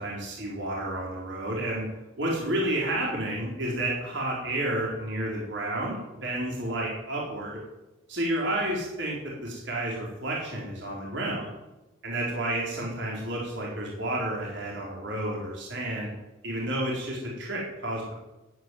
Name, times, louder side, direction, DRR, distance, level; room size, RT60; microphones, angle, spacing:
voice 1, 0.0-1.8 2.2-7.6 8.1-11.5 12.0-16.1 16.4-18.1, right 1 dB, 60° right, -3 dB, 4.6 m, -31 dB
14.5 x 9.5 x 9.6 m, 1.0 s
head